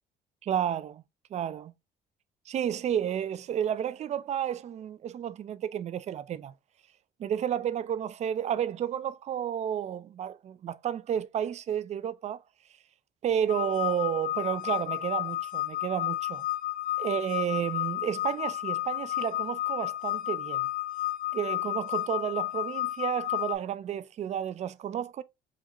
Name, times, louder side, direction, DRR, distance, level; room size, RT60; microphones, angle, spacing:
voice 1, 0.4-1.0 1.3-1.7 2.5-6.5 7.2-12.4 13.2-16.4 17.0-20.7 21.3-25.2, right 9 dB, 40° right, 0.4 m, -31 dB
sound 1, 13.5-23.6, left 15 dB, 55° left, 0.5 m, -32 dB
4.9 x 2.8 x 2.8 m
cardioid pair, 110°, 17 cm